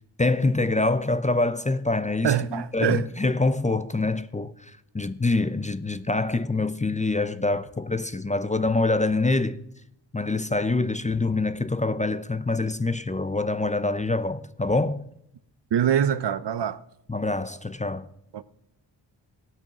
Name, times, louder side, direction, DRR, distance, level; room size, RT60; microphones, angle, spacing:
voice 1, 0.2-9.6 10.1-15.0 17.1-18.1, left 2 dB, 15° left, 0.6 m, -25 dB
voice 2, 2.2-3.1 15.7-16.8 18.3-18.4, right 9 dB, 60° right, 0.8 m, -24 dB
15.5 x 9.1 x 6.1 m
cardioid pair, 70°, 46 cm